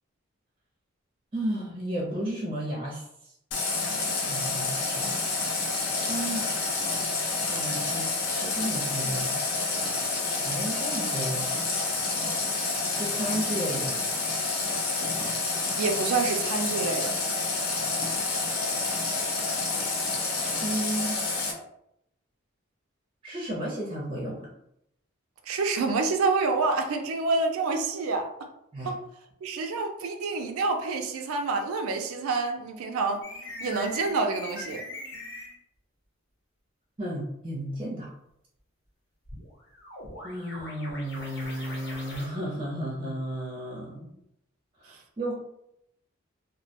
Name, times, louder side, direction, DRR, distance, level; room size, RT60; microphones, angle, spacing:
voice 1, 1.3-3.3 3.9-5.5 6.0-6.7 7.4-9.3 10.4-11.5 12.9-14.1 20.6-21.2 23.2-24.5 28.7-28.9 37.0-38.1 40.2-44.1 44.8-45.3, right 1 dB, 25° right, -4 dB, 0.5 m, -33 dB
Water tap faucet, 3.5-21.5, left 3 dB, 90° left, 0.6 m, -29 dB
voice 2, 15.8-17.1 25.5-28.3 28.8-29.0 29.4-33.2 33.6-34.8, right 3 dB, 85° right, 4 dB, 0.4 m, -27 dB
sound 1, 33.2-35.6 39.3-42.3, left 2 dB, 55° left, 0.8 m, -41 dB
2.2 x 2.1 x 2.7 m, 0.78 s
head